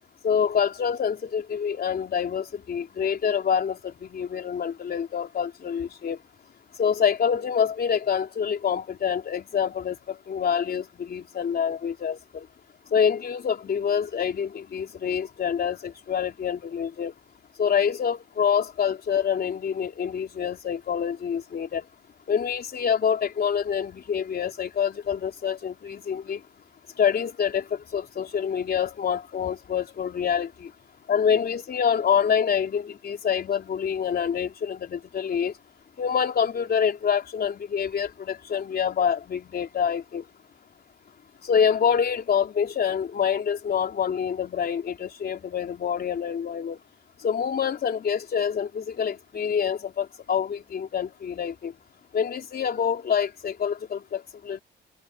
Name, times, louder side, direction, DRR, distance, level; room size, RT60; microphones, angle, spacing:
voice 1, 0.2-6.2 6.8-12.5 12.9-17.1 17.6-21.8 22.3-26.4 27.0-30.7 31.1-35.5 36.0-40.2 41.4-46.8 47.2-51.7 52.1-54.6, left 7 dB, 50° left, 3.6 m, -26 dB
cardioid pair, 90°, 20 cm